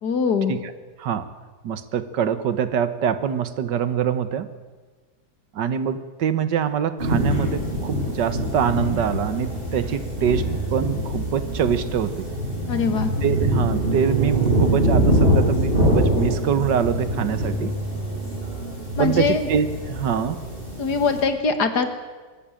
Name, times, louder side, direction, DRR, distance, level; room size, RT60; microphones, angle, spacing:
voice 1, 0.0-0.5 12.7-13.1 19.0-19.5 20.8-21.9, left 4 dB, 65° left, 8 dB, 2.3 m, -22 dB
voice 2, 1.0-1.3 1.6-4.5 5.5-12.3 13.2-17.7 19.0-20.4, right 8 dB, 85° right, 13 dB, 1.8 m, -24 dB
sound 1, 7.0-21.2, equal, 30° right, 7.3 m, -24 dB
22.5 x 13.5 x 9.0 m, 1.4 s
omnidirectional pair, 1.8 m